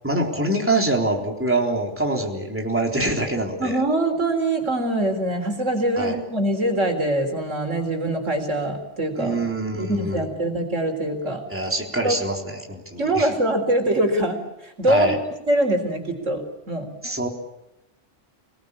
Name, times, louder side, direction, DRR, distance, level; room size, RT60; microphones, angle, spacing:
voice 1, 0.0-3.8 6.0-6.2 9.2-10.2 11.5-13.3 14.9-15.2 17.0-17.3, right 2 dB, 10° right, 0 dB, 3.8 m, -24 dB
voice 2, 3.6-9.4 9.7-11.4 12.0-12.2 13.0-15.1 15.5-16.4 16.7-16.9, right 1 dB, 75° right, 4 dB, 4.3 m, -23 dB
28.0 x 19.0 x 8.6 m, 0.89 s
omnidirectional pair, 1.3 m